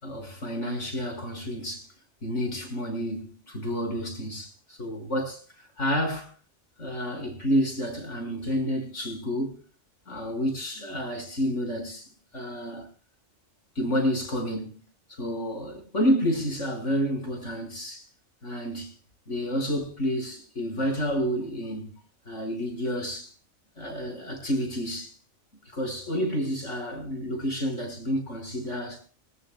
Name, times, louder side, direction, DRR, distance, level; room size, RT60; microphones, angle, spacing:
voice 1, 0.0-1.9 2.2-4.5 4.8-5.4 5.8-6.3 6.8-9.6 10.1-12.1 12.3-12.9 13.8-14.8 15.2-18.1 18.4-18.9 19.3-21.9 22.3-23.3 23.8-25.1 25.7-29.0, equal, 85° left, 6.1 m, -29 dB
25.0 x 14.5 x 2.3 m
omnidirectional pair, 1.2 m